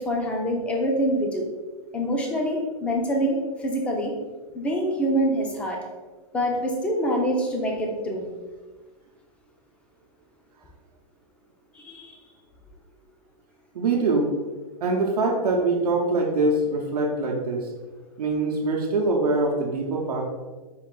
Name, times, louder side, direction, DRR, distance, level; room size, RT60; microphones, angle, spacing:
voice 1, 0.0-1.5 1.9-4.1 4.5-5.8 6.3-8.3 11.7-12.2, equal, 5° left, 1 dB, 0.4 m, -25 dB
voice 2, 13.7-14.3 14.8-17.7 18.2-20.3, right 2 dB, 90° right, -1 dB, 0.7 m, -23 dB
4.5 x 2.4 x 3.7 m, 1.3 s
hypercardioid pair, 155°, 19 cm